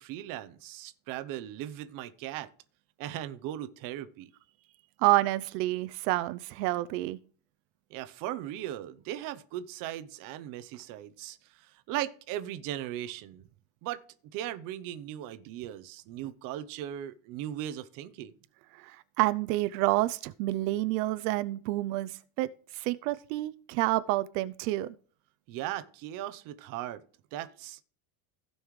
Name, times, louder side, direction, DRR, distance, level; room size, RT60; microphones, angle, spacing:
voice 1, 0.0-2.5 3.0-4.3 7.9-13.5 13.8-14.0 14.3-18.3 25.5-27.0 27.3-27.8, right 12 dB, 40° right, 0.8 m, -38 dB
voice 2, 5.0-7.2 18.8-22.5 22.7-24.9, right 17 dB, 75° right, 0.7 m, -28 dB
16.0 x 5.5 x 3.1 m
cardioid pair, 170°, 49 cm